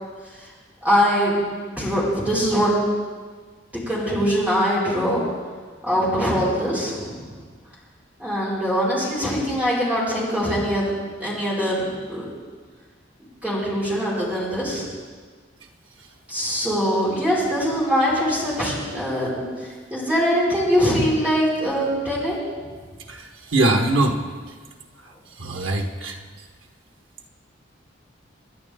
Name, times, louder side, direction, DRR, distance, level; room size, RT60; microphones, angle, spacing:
voice 1, 0.8-1.4 1.7-2.7 3.7-5.2 5.8-7.3 8.2-12.2 13.4-14.9 16.3-22.4, equal, 5° right, -7 dB, 4.5 m, -22 dB
voice 2, 23.1-24.2 25.4-26.2, right 2 dB, 85° right, 3 dB, 1.4 m, -22 dB
26.5 x 10.5 x 3.6 m, 1.5 s
head